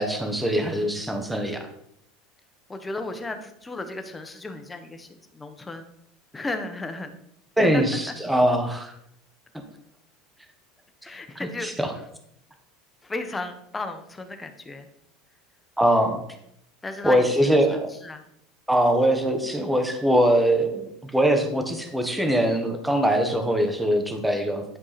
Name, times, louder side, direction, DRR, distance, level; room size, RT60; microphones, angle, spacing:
voice 1, 0.0-1.7 7.6-8.9 11.6-11.9 15.8-16.2 17.0-17.9 18.7-24.6, right 1 dB, 5° right, 5 dB, 1.3 m, -22 dB
voice 2, 2.7-5.9 6.3-7.2 7.6-8.1 11.0-12.1 13.0-14.9 16.8-17.6 17.9-18.2, left 2 dB, 15° left, 7 dB, 1.0 m, -34 dB
10.0 x 4.7 x 4.2 m, 0.76 s
supercardioid pair, 115°, 0 cm